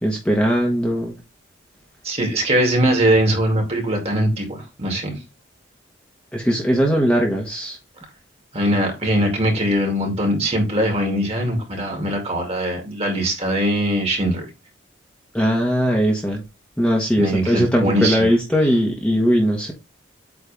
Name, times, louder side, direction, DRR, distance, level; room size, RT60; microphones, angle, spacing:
voice 1, 0.0-1.1 6.3-7.8 15.3-16.4 16.8-19.7, equal, 5° left, 0 dB, 1.2 m, -19 dB
voice 2, 2.0-5.2 8.5-14.4 17.2-18.3, right 1 dB, 30° right, 2 dB, 2.5 m, -21 dB
8.5 x 3.3 x 3.4 m, 0.26 s
head